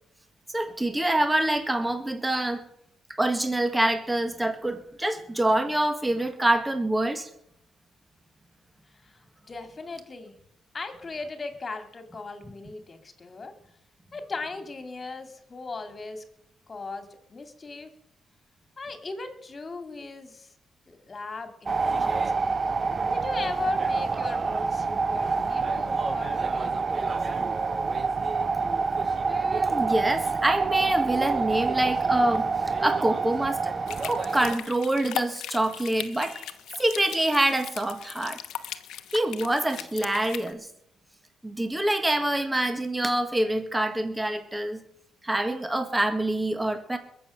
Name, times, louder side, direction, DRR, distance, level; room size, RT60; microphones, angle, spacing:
voice 1, 0.5-2.6 3.1-7.3 29.2-32.5 32.8-33.8 34.1-36.5 36.8-38.4 39.1-40.7 41.4-44.8 45.2-47.0, right 1 dB, 10° right, 8 dB, 1.8 m, -26 dB
voice 2, 9.0-10.4 10.7-13.5 14.1-16.2 16.7-17.9 18.8-20.5 20.9-22.2 23.0-26.7, left 3 dB, 35° left, 8 dB, 2.6 m, -38 dB
sound 1, 21.7-34.5, right 4 dB, 35° right, 0.9 m, -27 dB
sound 2, 33.9-40.5, left 11 dB, 80° left, 1.0 m, -39 dB
21.5 x 7.6 x 6.5 m, 0.73 s
cardioid pair, 90°, 0 cm